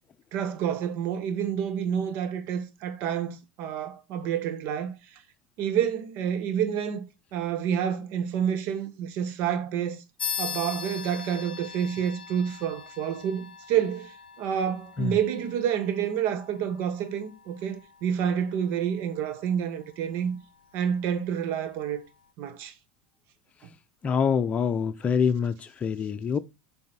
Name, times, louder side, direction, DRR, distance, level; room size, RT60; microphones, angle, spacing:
voice 1, 0.3-4.9 5.6-7.0 7.3-10.0 10.4-20.4 20.7-22.0 22.4-22.7, right 8 dB, 55° right, 1.4 m, -28 dB
sound 1, 10.2-20.2, left 7 dB, 85° left, 0.6 m, -41 dB
voice 2, 24.0-26.4, left 6 dB, 25° left, 0.7 m, -25 dB
7.6 x 4.2 x 5.8 m
figure-of-eight pair, 80°, 5 cm